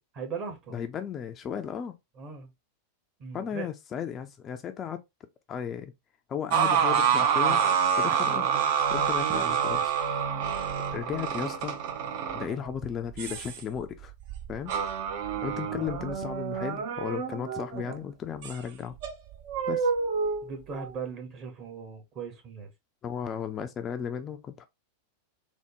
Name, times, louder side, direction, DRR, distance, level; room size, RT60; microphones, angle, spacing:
voice 1, 0.2-0.8 2.2-2.5 3.2-3.7 12.5-12.7 15.3-15.8 20.4-22.7, right 5 dB, 35° right, 1.1 m, -39 dB
voice 2, 0.7-1.9 3.3-5.0 5.5-5.9 6.3-7.6 8.0-8.5 8.9-9.9 10.9-11.8 12.3-14.1 14.5-14.7 15.4-19.0 19.7-19.9 23.0-24.7, left 8 dB, 25° left, 0.3 m, -35 dB
sound 1, 6.5-18.0 18.4-18.5 19.0-20.9, right 7 dB, 50° right, 0.5 m, -28 dB
3.4 x 2.1 x 2.9 m
figure-of-eight pair, 90°, 0 cm